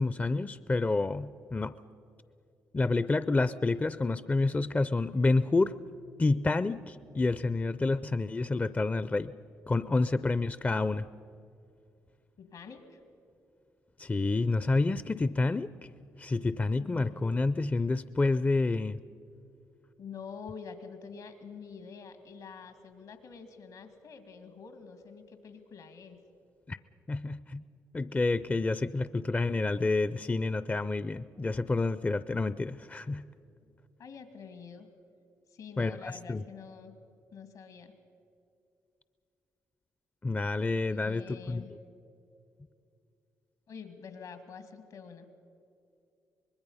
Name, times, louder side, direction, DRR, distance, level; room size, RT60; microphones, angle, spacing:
voice 1, 0.0-1.7 2.7-5.7 6.2-9.3 9.7-11.1 14.0-15.7 16.2-19.0 26.7-26.8 27.1-27.6 27.9-33.3 35.8-36.4 40.2-41.6, left 3 dB, 25° left, 15 dB, 0.5 m, -29 dB
voice 2, 12.4-13.0 16.8-17.1 20.0-26.2 34.0-34.9 35.5-36.9 37.3-37.9 40.9-41.7 43.7-45.3, left 6 dB, 75° left, 8 dB, 2.2 m, -47 dB
24.5 x 20.5 x 5.6 m, 2.5 s
supercardioid pair, 50°, 7 cm